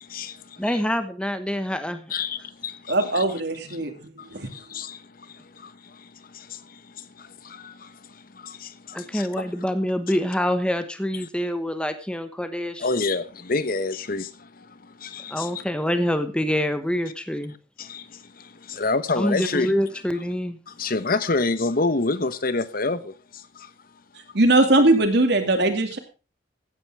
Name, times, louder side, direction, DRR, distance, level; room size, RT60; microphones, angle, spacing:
voice 1, 0.0-0.8 2.1-3.2 3.7-3.9 4.2-9.5 12.8-15.6 17.8-19.7 20.7-23.2, left 3 dB, 50° left, 1.0 m, -29 dB
voice 2, 0.6-2.1 8.9-12.9 15.3-17.5 19.2-20.6, equal, 5° left, 1.1 m, -26 dB
voice 3, 2.9-4.5 24.3-26.0, right 2 dB, 60° right, 2.4 m, -20 dB
15.5 x 8.9 x 4.8 m
head